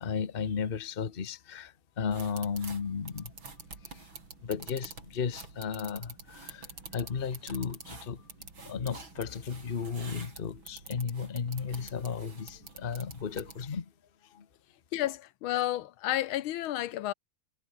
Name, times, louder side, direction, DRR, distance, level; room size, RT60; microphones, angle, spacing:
voice 1, 0.0-3.3 3.9-4.0 4.4-8.2 8.6-13.9 14.3-14.5, left 6 dB, 30° left, 1.2 m, -34 dB
sound 1, 2.1-13.8, right 4 dB, 70° right, 5.5 m, -47 dB
voice 2, 14.9-17.1, left 13 dB, 80° left, 1.6 m, -31 dB
omnidirectional pair, 2.3 m